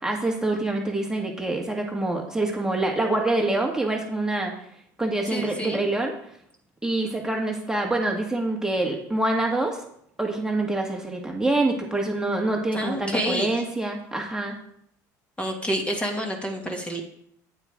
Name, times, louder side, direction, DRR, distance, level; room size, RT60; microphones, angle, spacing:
voice 1, 0.0-4.5 5.0-6.1 6.8-9.8 10.2-14.5, right 2 dB, 5° right, 0 dB, 2.0 m, -26 dB
voice 2, 5.3-5.8 12.7-13.5 15.4-17.0, equal, 10° left, 1 dB, 2.5 m, -28 dB
9.3 x 8.8 x 3.8 m, 0.71 s
hypercardioid pair, 80°, 9 cm